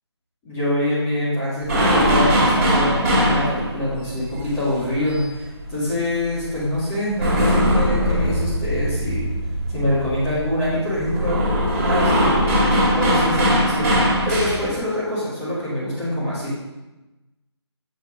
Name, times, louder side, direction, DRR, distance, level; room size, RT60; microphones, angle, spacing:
voice 1, 0.4-9.3 9.7-11.4 11.9-16.5, left 1 dB, 10° left, -10 dB, 2.2 m, -25 dB
sound 1, 1.6-5.9 6.2-14.8, equal, 35° right, 2.6 m, -20 dB
7.8 x 6.1 x 3.7 m, 1.0 s
figure-of-eight pair, 165°, 15 cm